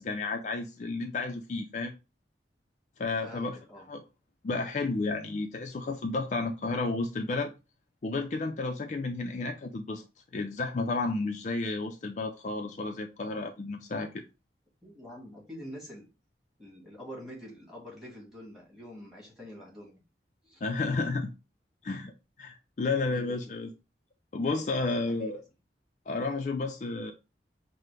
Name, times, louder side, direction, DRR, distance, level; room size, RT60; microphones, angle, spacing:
voice 1, 0.0-1.9 3.0-3.6 3.9-4.0 4.4-7.5 8.0-10.0 10.3-14.2 20.6-21.3 21.8-22.1 22.4-23.7 24.3-25.4 26.1-27.1, left 3 dB, 45° left, 0.4 m, -32 dB
voice 2, 3.2-3.9 14.8-16.1 16.6-20.0 20.4-20.6 23.0-23.6 25.1-25.3, equal, ahead, 1.7 m, -46 dB
5.6 x 2.0 x 3.2 m
head